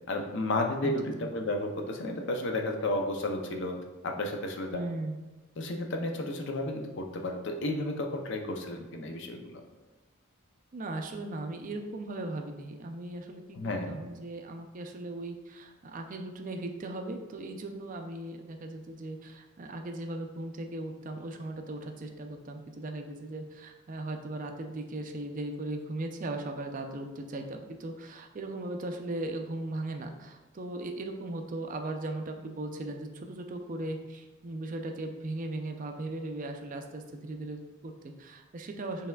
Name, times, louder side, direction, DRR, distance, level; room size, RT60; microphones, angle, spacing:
voice 1, 0.1-3.8 4.0-4.8 5.6-9.6 13.5-14.0, left 2 dB, 60° left, 4 dB, 0.5 m, -32 dB
voice 2, 4.7-5.2 10.7-39.1, right 2 dB, 40° right, 5 dB, 0.4 m, -38 dB
5.5 x 3.4 x 2.2 m, 1.2 s
head